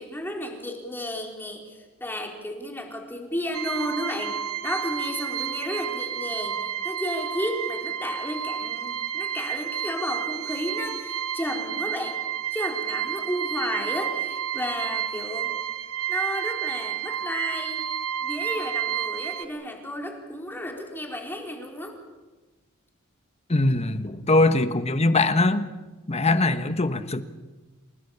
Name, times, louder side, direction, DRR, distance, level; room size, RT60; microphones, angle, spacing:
voice 1, 0.0-4.4 4.6-12.2 12.5-15.5 16.1-17.8 18.2-22.0, left 1 dB, 10° left, 2 dB, 4.2 m, -33 dB
sound 1, 3.5-19.4, right 10 dB, 70° right, 1.2 m, -31 dB
voice 2, 23.5-25.7 26.1-27.2, left 2 dB, 30° left, 11 dB, 1.3 m, -22 dB
28.5 x 19.0 x 7.2 m, 1.2 s
head